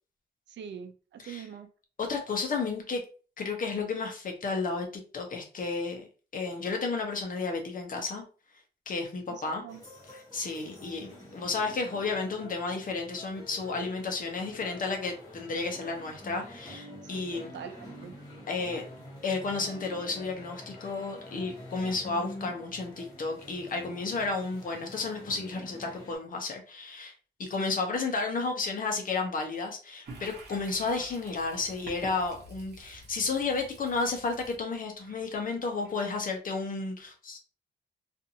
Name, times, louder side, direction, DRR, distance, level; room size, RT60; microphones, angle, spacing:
voice 1, 0.5-1.7 9.3-9.8 17.1-18.1, right 8 dB, 85° right, 0.5 m, -44 dB
voice 2, 2.0-3.0 3.4-4.9 5.1-6.0 6.3-8.2 8.9-9.6 10.1-17.5 18.5-18.9 19.2-27.1 27.4-37.4, left 4 dB, 50° left, 0.7 m, -32 dB
sound 1, 9.7-26.2, left 1 dB, 20° left, 1.1 m, -47 dB
Toilet flush, 30.1-36.6, right 2 dB, 65° right, 0.9 m, -49 dB
2.5 x 2.5 x 2.7 m
wide cardioid pair, 150°, 18 cm